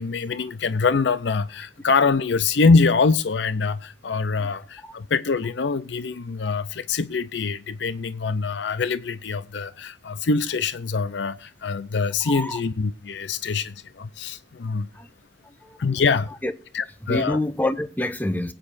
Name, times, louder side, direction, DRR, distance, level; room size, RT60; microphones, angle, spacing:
voice 1, 0.0-14.9 15.8-16.3 16.7-17.4, left 4 dB, 70° left, 0.5 m, -24 dB
voice 2, 12.2-12.6 14.9-15.1 15.4-15.8 16.4-16.5 17.0-18.5, left 1 dB, 10° left, 0.8 m, -27 dB
22.0 x 9.0 x 2.5 m
head